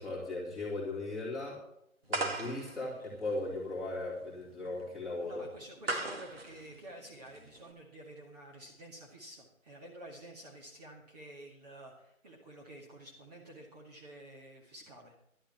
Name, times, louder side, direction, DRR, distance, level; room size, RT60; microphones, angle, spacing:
voice 1, 0.0-1.6 2.1-5.4, left 2 dB, ahead, -7 dB, 2.7 m, -37 dB
sound 1, 2.1-7.7, right 2 dB, 45° right, 2.1 m, -39 dB
voice 2, 5.2-15.2, right 1 dB, 30° right, -2 dB, 2.0 m, -50 dB
11.5 x 10.5 x 5.8 m, 0.75 s
figure-of-eight pair, 155°, 42 cm